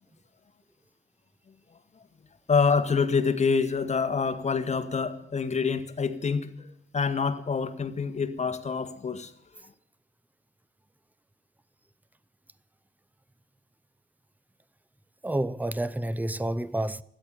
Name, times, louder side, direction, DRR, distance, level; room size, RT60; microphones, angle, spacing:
voice 1, 2.5-9.3, left 5 dB, 35° left, 1.6 m, -26 dB
voice 2, 15.2-17.0, right 1 dB, 10° right, 0.7 m, -29 dB
13.5 x 10.0 x 9.1 m
cardioid pair, 90°, 20 cm